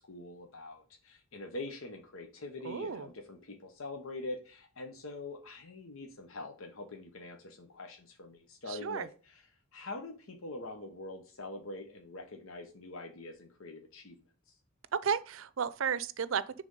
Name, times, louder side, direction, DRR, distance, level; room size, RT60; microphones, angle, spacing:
voice 1, 0.0-14.1 14.5-14.6, left 2 dB, 80° left, 1.0 m, -44 dB
voice 2, 2.6-3.1 8.7-9.1 15.0-16.4, right 7 dB, 75° right, 0.5 m, -33 dB
9.8 x 3.4 x 5.4 m
head